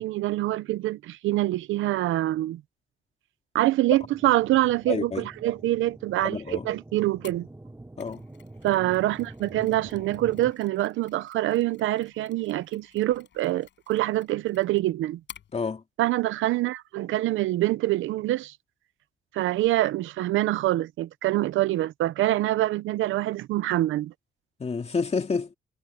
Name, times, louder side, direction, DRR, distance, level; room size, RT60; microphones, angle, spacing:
voice 1, 0.0-2.6 3.5-7.5 8.6-15.2 16.0-18.6 19.3-24.1, right 15 dB, 85° right, 0.8 m, -25 dB
sound 1, 4.0-10.5, right 2 dB, 15° right, 4.2 m, -46 dB
voice 2, 4.9-5.3 6.2-6.7 8.0-8.2 15.5-15.8 24.6-25.5, left 4 dB, 30° left, 2.7 m, -29 dB
Mechanisms, 7.2-15.5, left 9 dB, 65° left, 5.6 m, -53 dB
cardioid pair, 90°, 20 cm